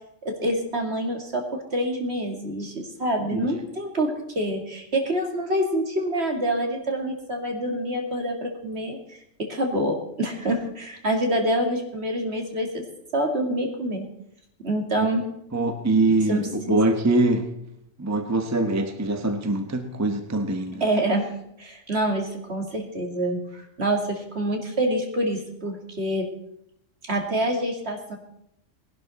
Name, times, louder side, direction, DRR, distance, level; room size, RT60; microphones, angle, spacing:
voice 1, 0.2-4.1 4.4-12.8 13.1-14.1 14.6-15.2 16.3-16.4 16.7-16.9 20.8-21.3 21.6-26.3 27.1-28.2, right 1 dB, 55° right, 2 dB, 2.4 m, -26 dB
voice 2, 15.5-17.5 18.0-20.8, right 2 dB, 15° right, 6 dB, 0.9 m, -23 dB
19.0 x 11.5 x 4.1 m, 0.78 s
omnidirectional pair, 1.3 m